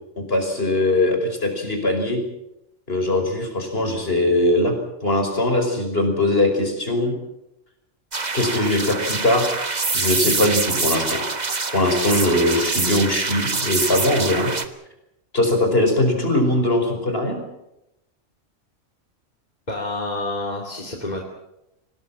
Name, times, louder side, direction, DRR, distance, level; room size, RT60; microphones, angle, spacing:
voice 1, 0.3-2.2 2.9-4.7 5.0-7.1 8.3-9.5 9.9-11.2 11.7-14.5 15.3-17.4, left 1 dB, 50° left, 4 dB, 5.3 m, -21 dB
sound 1, 8.1-14.7, right 4 dB, 35° right, 1.5 m, -25 dB
voice 2, 19.7-21.2, left 2 dB, 35° left, 0 dB, 2.9 m, -28 dB
24.5 x 18.5 x 7.5 m, 0.87 s
omnidirectional pair, 1.3 m